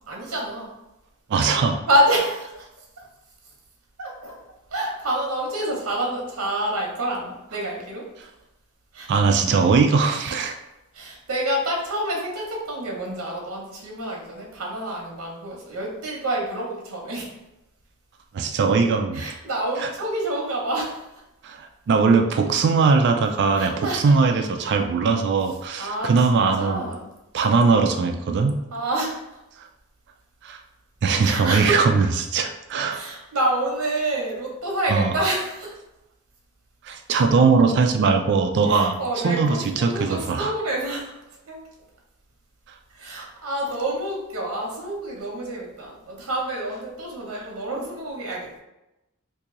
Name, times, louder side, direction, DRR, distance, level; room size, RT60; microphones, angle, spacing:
voice 1, 0.1-0.7 1.9-2.7 4.0-4.5 4.7-8.3 8.9-9.2 10.2-10.3 10.9-17.3 19.1-21.2 23.6-24.1 25.8-27.1 28.7-29.3 31.2-31.8 32.9-35.8 38.7-41.2 41.4-41.6 42.9-48.6, right 1 dB, 70° right, -1 dB, 0.9 m, -27 dB
voice 2, 1.3-1.8 9.1-10.6 18.3-19.3 19.8-19.9 21.4-26.8 27.3-28.6 30.4-30.6 31.0-33.0 34.9-35.1 36.8-39.0 39.2-40.5 43.2-43.3, right 4 dB, 55° right, 5 dB, 0.3 m, -20 dB
2.9 x 2.7 x 3.7 m, 0.93 s
head